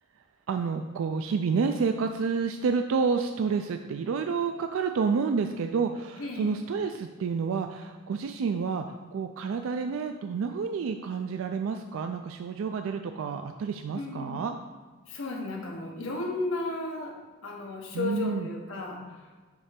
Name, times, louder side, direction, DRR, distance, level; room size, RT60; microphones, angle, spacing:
voice 1, 0.5-14.5 17.9-18.5, right 5 dB, 85° right, 6 dB, 0.3 m, -29 dB
voice 2, 6.2-6.6 13.9-14.4 15.1-17.2 17.4-19.4, left 2 dB, 80° left, 0 dB, 1.2 m, -34 dB
7.0 x 3.2 x 5.1 m, 1.4 s
head